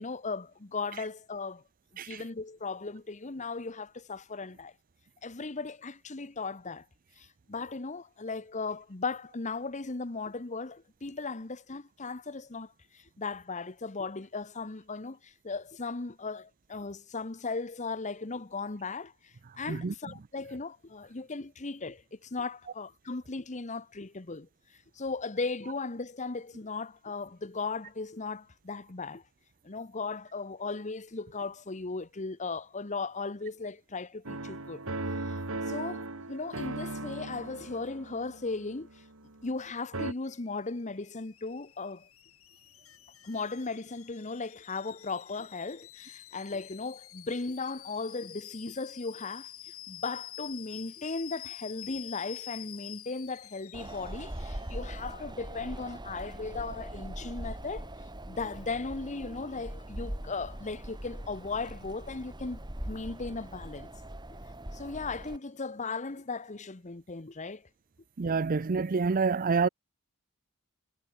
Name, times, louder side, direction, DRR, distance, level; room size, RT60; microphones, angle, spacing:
voice 1, 0.0-1.6 2.0-4.7 5.2-6.8 7.2-24.5 25.0-29.2 29.6-34.8 35.7-38.9 39.4-42.1 43.2-49.5 49.9-57.9 58.3-63.9 64.7-67.6, left 3 dB, 35° left, 1.0 m, -37 dB
sound 1, 34.3-39.6 39.9-40.1, right 2 dB, 65° right, 2.5 m, -38 dB
Alarm / Boiling, 40.3-55.1, left 13 dB, 65° left, 3.2 m, -48 dB
Wind, 53.7-65.4, right 1 dB, 20° right, 2.4 m, -41 dB
voice 2, 68.2-69.7, right 4 dB, 40° right, 0.5 m, -27 dB
head